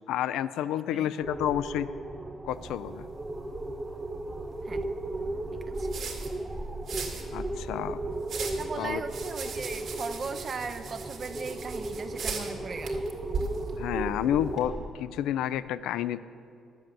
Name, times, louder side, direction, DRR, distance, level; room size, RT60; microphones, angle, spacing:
voice 1, 0.1-1.9 2.4-3.1 7.3-8.0 8.8-9.0 13.7-16.2, left 11 dB, 90° left, 15 dB, 0.3 m, -30 dB
sound 1, 1.2-14.9, right 2 dB, 20° right, 0.9 m, -36 dB
sound 2, 2.5-14.6, right 4 dB, 70° right, 2.1 m, -40 dB
voice 2, 8.6-13.0, right 5 dB, 45° right, 8 dB, 0.5 m, -38 dB
11.0 x 7.8 x 7.5 m, 2.4 s
cardioid pair, 90°, 0 cm